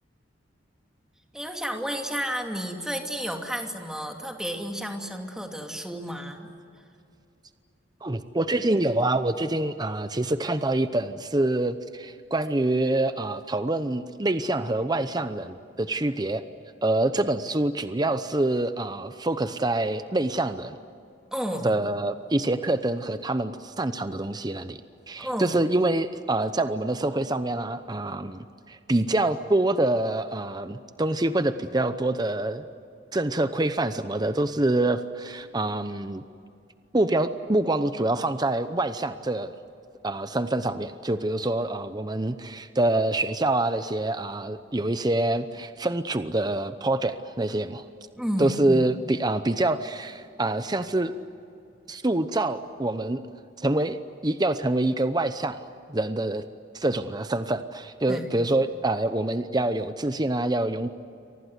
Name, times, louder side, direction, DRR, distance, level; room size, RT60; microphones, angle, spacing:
voice 1, 1.3-6.5 21.3-21.8 25.2-25.6 48.1-48.9 58.1-58.5, equal, 5° right, 3 dB, 2.6 m, -32 dB
voice 2, 8.0-16.4 16.8-20.8 21.6-24.8 25.1-32.6 33.1-36.2 36.9-39.5 40.0-47.8 48.4-51.1 51.9-53.2 53.6-54.0 54.2-55.6 55.9-56.4 56.7-60.9, right 2 dB, 20° right, 10 dB, 0.8 m, -26 dB
29.5 x 24.5 x 8.2 m, 2.6 s
head